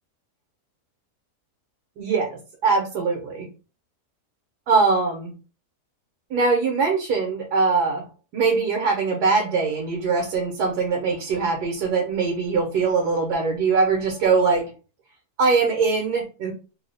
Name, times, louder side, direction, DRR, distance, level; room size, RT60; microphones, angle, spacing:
voice 1, 2.0-3.5 4.7-5.3 6.3-8.0 8.3-14.7 15.4-16.5, right 4 dB, 90° right, 1 dB, 1.4 m, -22 dB
3.1 x 2.1 x 3.8 m, 0.33 s
omnidirectional pair, 1.6 m